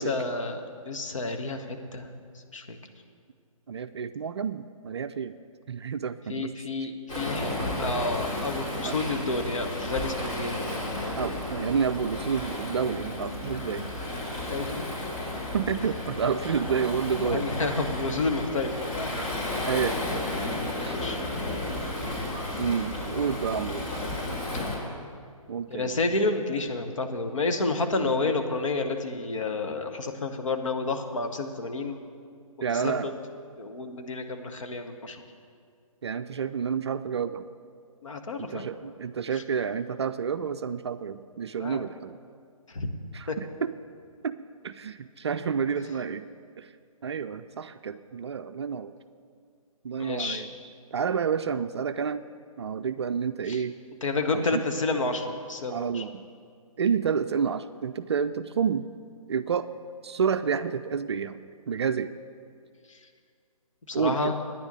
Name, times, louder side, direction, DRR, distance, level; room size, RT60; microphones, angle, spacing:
voice 1, 0.0-2.1 2.5-2.8 6.3-7.5 7.8-11.2 14.5-15.1 16.9-19.5 20.9-21.2 25.7-32.0 32.7-33.2 33.6-35.2 38.0-38.7 39.3-39.4 41.6-41.9 42.7-42.9 43.3-43.4 50.0-50.4 53.5-53.6 54.0-56.0 62.9-63.0 63.9-64.4, left 3 dB, 60° left, 5 dB, 1.2 m, -30 dB
voice 2, 3.7-5.4 5.7-6.5 8.8-9.0 11.2-13.9 15.2-15.3 15.5-17.5 19.2-19.3 19.7-20.0 20.8-21.0 22.6-23.8 25.5-25.9 28.0-28.1 32.6-33.1 36.0-37.5 38.4-42.2 43.1-43.5 44.2-44.4 44.6-46.3 46.6-46.7 47.0-48.9 49.8-50.5 50.9-52.2 52.6-53.8 54.3-54.6 55.7-56.2 56.8-58.9 59.3-59.7 60.0-61.4 61.7-62.1 63.9-64.3, right 6 dB, 50° right, 11 dB, 0.4 m, -29 dB
Waves surf, 7.1-24.8, left 1 dB, 35° left, 3.4 m, -33 dB
10.0 x 7.1 x 9.0 m, 2.1 s
figure-of-eight pair, 135°, 18 cm